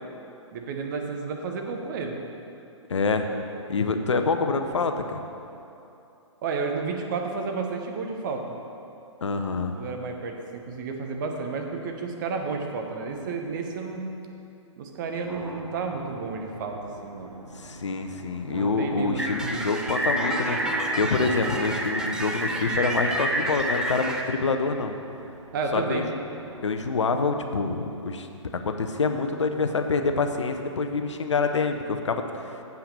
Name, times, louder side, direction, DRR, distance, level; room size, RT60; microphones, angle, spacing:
voice 1, 0.5-2.2 6.4-8.4 9.7-14.1 14.8-17.3 18.5-19.6 21.2-21.5 25.5-26.0, right 4 dB, 40° right, 3 dB, 1.0 m, -31 dB
voice 2, 2.9-3.3 3.7-5.2 9.2-9.7 17.5-25.0 25.7-26.1 26.6-28.3 28.6-32.6, left 4 dB, 70° left, 6 dB, 0.7 m, -26 dB
sound 1, 15.3-26.9, right 2 dB, 80° right, 0.6 m, -42 dB
sound 2, 19.2-24.2, right 1 dB, 5° right, 0.4 m, -28 dB
7.6 x 5.7 x 6.8 m, 2.7 s
figure-of-eight pair, 120°, 16 cm